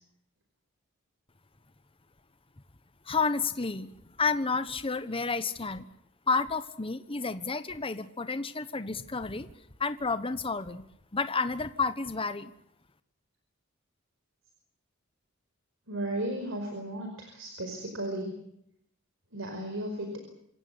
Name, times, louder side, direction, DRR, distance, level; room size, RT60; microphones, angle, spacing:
voice 1, 3.1-3.9 4.2-5.9 6.3-9.5 9.8-10.8 11.1-12.5, left 4 dB, 25° left, 11 dB, 1.1 m, -30 dB
voice 2, 15.9-18.3 19.3-20.1, right 1 dB, 70° right, 4 dB, 5.0 m, -34 dB
27.0 x 17.0 x 9.7 m, 0.77 s
head